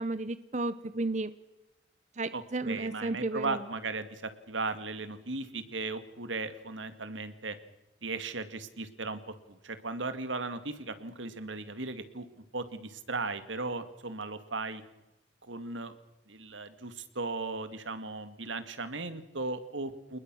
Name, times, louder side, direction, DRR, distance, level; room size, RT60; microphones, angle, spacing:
voice 1, 0.0-1.3 2.2-3.6, right 2 dB, 40° right, 14 dB, 0.8 m, -33 dB
voice 2, 2.3-7.6 8.0-14.8 15.4-16.0 16.3-20.2, right 3 dB, 90° right, 11 dB, 2.2 m, -37 dB
29.5 x 20.0 x 6.3 m, 0.99 s
head